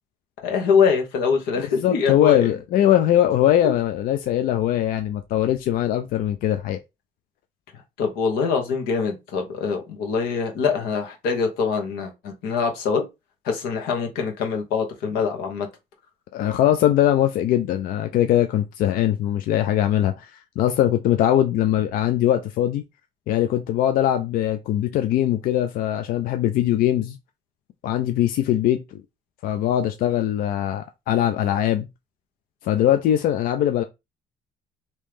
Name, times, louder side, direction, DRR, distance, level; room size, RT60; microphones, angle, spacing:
voice 1, 0.4-2.5 3.6-3.7 8.0-13.0 13.4-15.7, left 5 dB, 85° left, 1.1 m, -24 dB
voice 2, 1.6-6.8 16.3-22.8 23.3-27.2 27.8-28.8 29.4-31.9 32.6-33.8, left 11 dB, 65° left, 0.4 m, -21 dB
3.0 x 2.7 x 3.4 m
cardioid pair, 135°, 16 cm